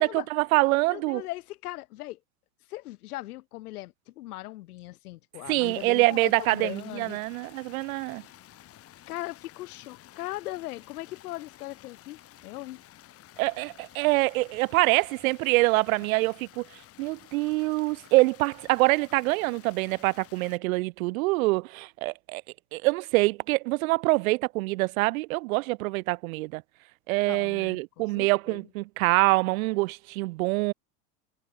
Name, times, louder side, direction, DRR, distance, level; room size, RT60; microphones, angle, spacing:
voice 1, 0.0-1.2 5.5-8.2 13.4-16.6 17.0-22.4 22.7-26.6 27.1-30.7, right 23 dB, 65° right, 1.4 m, -25 dB
voice 2, 0.9-2.2 2.7-7.2 9.1-12.8 27.3-28.6, left 17 dB, 80° left, 6.6 m, -39 dB
sound 1, 5.6-20.6, left 13 dB, 30° left, 4.4 m, -53 dB
supercardioid pair, 160°, 44 cm